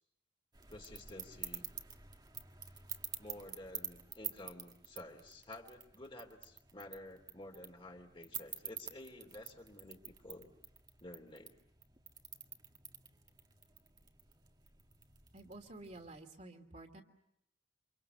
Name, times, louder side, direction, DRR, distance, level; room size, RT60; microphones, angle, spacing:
sound 1, 0.5-16.2, right 7 dB, 25° right, 1.8 m, -49 dB
voice 1, 0.7-1.6 3.2-10.5 11.0-11.6, left 1 dB, 30° left, 4 dB, 3.0 m, -51 dB
voice 2, 15.3-17.0, right 2 dB, 40° right, 4 dB, 2.7 m, -51 dB
29.0 x 26.5 x 7.0 m, 0.76 s
head